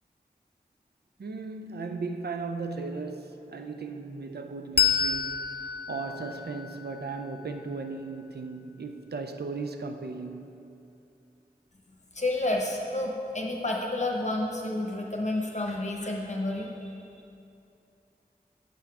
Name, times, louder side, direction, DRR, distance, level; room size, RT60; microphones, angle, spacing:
voice 1, 1.2-10.5, right 4 dB, 80° right, 0.5 m, -36 dB
Bell, 4.8-7.8, left 7 dB, 85° left, 0.4 m, -30 dB
voice 2, 12.2-16.7, left 2 dB, 45° left, 0.8 m, -30 dB
7.1 x 5.7 x 4.7 m
wide cardioid pair, 40°, 17 cm